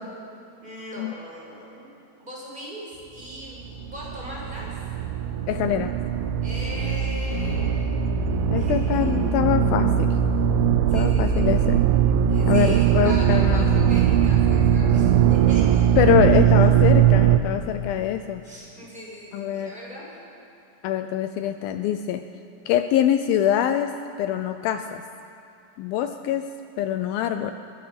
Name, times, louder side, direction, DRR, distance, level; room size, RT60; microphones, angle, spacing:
voice 1, 0.6-1.9 2.2-4.8 6.4-9.1 10.9-11.5 12.3-15.9 16.3-16.7 18.4-20.2, equal, 10° right, -5 dB, 5.6 m, -39 dB
sound 1, 3.6-17.4, right 9 dB, 80° right, 2.6 m, -20 dB
voice 2, 5.5-5.9 8.5-10.1 10.9-11.8 12.5-13.7 16.0-18.4 19.3-19.7 20.8-22.2 22.7-23.9 24.2-25.0 25.8-26.5 26.8-27.5, left 10 dB, 80° left, 8 dB, 2.4 m, -24 dB
22.5 x 21.5 x 6.0 m, 2.6 s
omnidirectional pair, 4.4 m